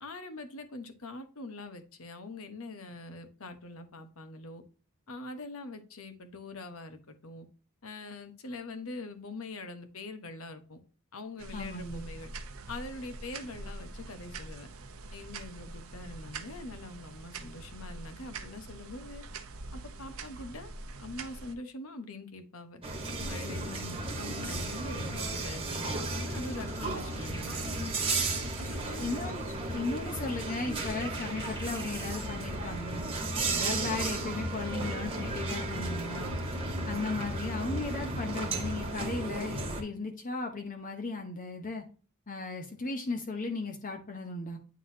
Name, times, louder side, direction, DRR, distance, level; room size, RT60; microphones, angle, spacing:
voice 1, 0.0-4.6 5.1-7.5 7.8-10.8 11.1-12.3 12.7-14.7 15.1-19.2 19.7-20.7 21.0-22.8 23.2-23.7 24.1-27.9 28.6-29.1 29.7-29.8, left 2 dB, 70° left, 8 dB, 1.0 m, -43 dB
sound 1, 11.4-21.5, right 3 dB, 70° right, 0.8 m, -44 dB
voice 2, 11.5-12.0 23.7-24.0 29.0-29.4 29.7-33.0 33.4-36.4 36.9-41.8 42.3-44.6, left 3 dB, 40° left, 3 dB, 0.8 m, -36 dB
sound 2, 22.8-39.8, right 2 dB, 25° right, 1.3 m, -34 dB
sound 3, 24.5-32.8 33.4-34.3, right 1 dB, 10° left, 1.3 m, -52 dB
9.3 x 3.9 x 2.7 m, 0.37 s
head